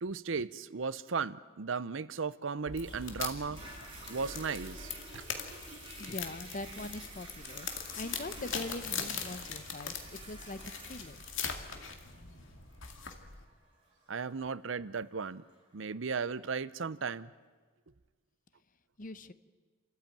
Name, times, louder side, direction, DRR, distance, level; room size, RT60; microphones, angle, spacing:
voice 1, 0.0-3.6 4.1-5.2 14.1-15.4 15.7-17.3, right 5 dB, 65° right, 17 dB, 0.7 m, -36 dB
sound 1, 2.7-13.4, left 6 dB, 70° left, 2.4 m, -41 dB
Toilet flush, 2.8-15.8 16.4-16.5, right 2 dB, 25° right, 7.5 m, -51 dB
voice 2, 6.0-7.7 8.0-11.2 19.0-19.3, left 2 dB, 40° left, 13 dB, 0.9 m, -42 dB
30.0 x 14.0 x 9.0 m, 1.5 s
head